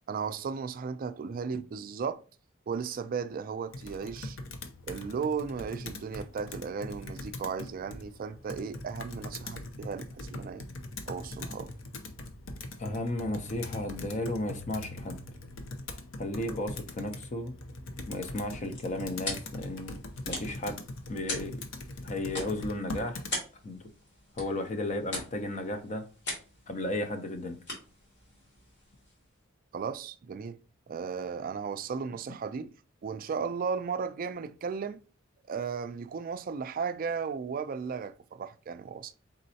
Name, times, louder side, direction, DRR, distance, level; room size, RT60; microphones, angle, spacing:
voice 1, 0.1-2.2 2.7-4.4 4.8-10.7 11.1-11.7 29.7-30.6 30.9-32.7 33.0-35.0 35.5-39.1, right 5 dB, 45° right, 0.3 m, -35 dB
Computer keyboard, 3.7-23.4, left 2 dB, 75° left, 0.6 m, -42 dB
voice 2, 12.8-15.2 16.2-17.5 18.1-20.0 20.3-20.8 21.1-21.6 22.0-23.2 23.6-23.9 24.4-26.0 26.7-27.6, left 1 dB, 35° left, 0.5 m, -34 dB
sound 1, 18.2-29.4, left 1 dB, 60° left, 2.0 m, -42 dB
4.1 x 3.7 x 2.7 m
head